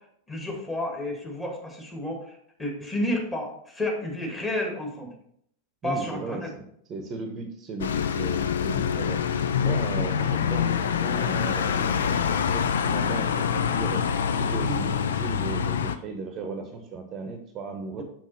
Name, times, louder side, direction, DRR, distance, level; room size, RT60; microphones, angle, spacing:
voice 1, 0.3-5.1 5.8-6.5 9.9-10.1 14.6-14.8 18.0-18.1, left 1 dB, 15° left, -1 dB, 2.4 m, -31 dB
voice 2, 5.8-9.2 9.6-12.2 12.5-14.0 14.4-18.0, right 3 dB, 30° right, 5 dB, 0.9 m, -36 dB
sound 1, 7.8-16.0, left 7 dB, 65° left, 0.4 m, -25 dB
6.2 x 5.9 x 4.2 m, 0.68 s
figure-of-eight pair, 90°, 0 cm